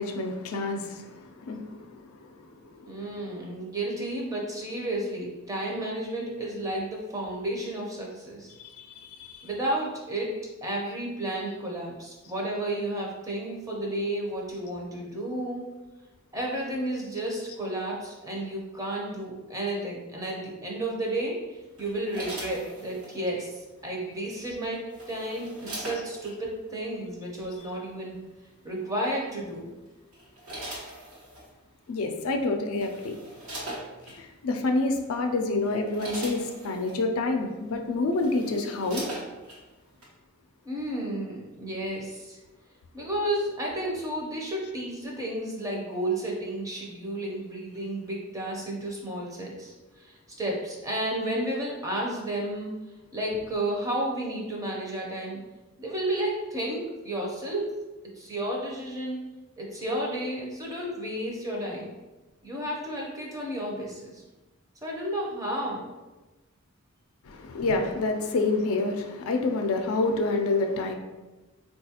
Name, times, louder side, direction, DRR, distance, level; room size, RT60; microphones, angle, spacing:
voice 1, 0.0-2.3 2.7-2.8 8.6-9.5 31.9-33.1 34.1-39.0 67.2-70.9, left 3 dB, 70° left, 4 dB, 0.4 m, -28 dB
voice 2, 2.9-8.5 9.4-10.4 10.6-15.6 16.3-24.8 25.1-28.2 28.6-29.7 40.6-42.4 42.9-52.7 53.1-55.4 55.8-57.7 58.1-59.2 59.6-61.9 62.4-64.2 64.8-65.9, right 1 dB, 15° right, -2 dB, 0.6 m, -32 dB
sound 1, 21.8-23.2 24.5-26.3 27.4-27.6 29.3-29.6 30.1-31.5 32.3-32.4 32.7-34.2 34.9-35.1 35.5-37.0 37.7-37.8 38.1-39.6 40.0-40.1, right 1 dB, 80° right, 1.0 m, -40 dB
3.9 x 2.3 x 2.8 m, 1.1 s
head